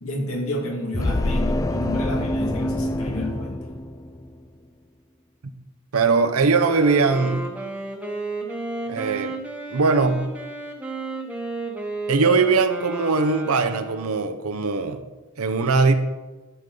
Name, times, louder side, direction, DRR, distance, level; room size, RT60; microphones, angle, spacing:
voice 1, 0.0-3.7, left 1 dB, 75° left, 0 dB, 2.2 m, -30 dB
sound 1, 0.9-4.4, left 1 dB, 15° left, 0.3 m, -25 dB
voice 2, 5.9-7.4 8.9-9.3 9.7-10.3 12.1-15.0 15.4-16.0, right 4 dB, 80° right, 8 dB, 0.8 m, -20 dB
Wind instrument woodwind instrument, 6.6-14.5, right 2 dB, 5° right, 1.2 m, -33 dB
12.5 x 7.0 x 3.9 m, 1.2 s
head